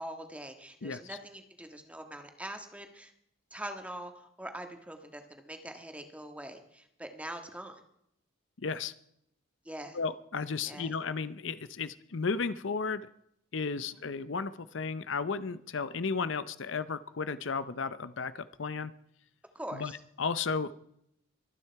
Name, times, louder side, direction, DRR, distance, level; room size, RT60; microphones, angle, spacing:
voice 1, 0.0-3.1 3.5-7.8 9.6-10.0 10.6-10.9 13.9-14.0 19.5-20.0, right 1 dB, 5° right, 6 dB, 1.6 m, -43 dB
voice 2, 0.8-1.2 8.6-8.9 9.9-13.1 13.5-18.9 19.7-19.9 20.2-20.7, left 5 dB, 65° left, 14 dB, 0.7 m, -34 dB
24.0 x 9.6 x 4.7 m, 0.74 s
head